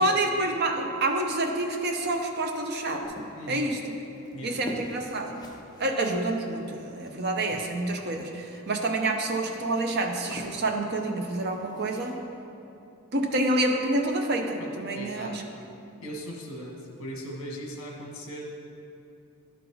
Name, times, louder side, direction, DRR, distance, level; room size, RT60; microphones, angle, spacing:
voice 1, 0.0-3.1 3.5-4.0 4.4-5.3 5.8-12.2 13.1-15.4, right 2 dB, 50° right, 3 dB, 0.7 m, -28 dB
sound 1, 3.0-12.2, left 1 dB, 20° left, 0.5 m, -45 dB
voice 2, 3.3-3.7 4.3-4.8 14.6-15.4 16.0-18.5, equal, 65° left, -1 dB, 1.3 m, -39 dB
11.5 x 3.9 x 4.6 m, 2.8 s
head